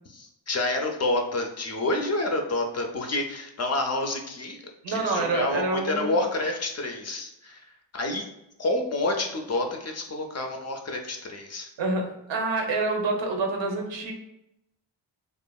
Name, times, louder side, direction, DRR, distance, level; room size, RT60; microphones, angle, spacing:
voice 1, 0.1-4.6 4.9-7.6 7.9-8.2 8.6-11.7, left 2 dB, 40° left, 2 dB, 0.4 m, -28 dB
voice 2, 4.8-6.1 11.8-14.1, right 3 dB, 80° right, 2 dB, 0.7 m, -27 dB
2.7 x 2.4 x 2.2 m, 0.82 s
wide cardioid pair, 100°, 44 cm